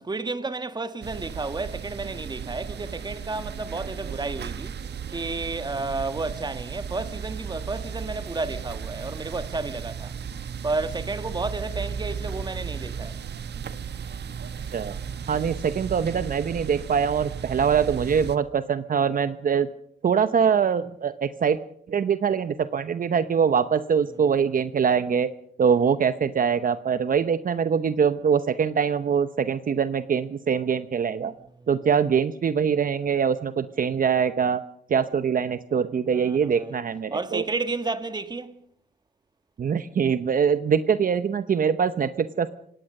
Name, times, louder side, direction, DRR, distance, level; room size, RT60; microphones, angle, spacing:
voice 1, 0.0-4.7 5.1-10.1 10.6-13.2 31.6-31.7 36.1-36.8 37.1-38.5, right 3 dB, 25° right, 1.6 m, -31 dB
sound 1, 1.0-18.4, right 7 dB, 65° right, 1.6 m, -35 dB
voice 2, 15.3-19.7 20.0-21.6 21.9-25.3 25.6-31.3 31.7-34.6 34.9-37.4 39.6-42.5, right 7 dB, 50° right, 0.9 m, -23 dB
25.0 x 18.5 x 6.6 m
cardioid pair, 110°, 18 cm